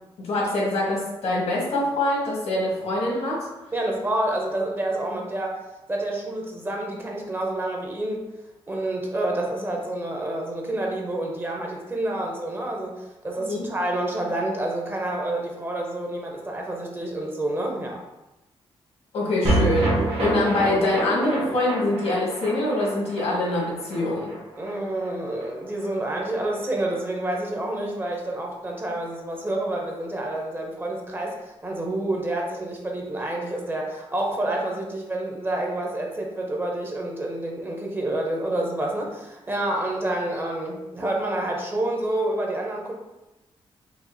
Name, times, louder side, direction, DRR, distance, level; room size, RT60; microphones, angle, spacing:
voice 1, 0.2-3.5 13.4-13.7 19.1-24.3, left 2 dB, 85° left, -4 dB, 1.4 m, -24 dB
voice 2, 3.7-5.6 5.9-8.2 8.7-18.0 24.6-42.9, right 1 dB, 20° right, 0 dB, 0.6 m, -28 dB
sound 1, 19.4-25.9 26.1-26.2 26.5-26.6, right 2 dB, 65° right, 1.2 m, -28 dB
4.9 x 2.4 x 2.6 m, 0.99 s
wide cardioid pair, 135°, 10 cm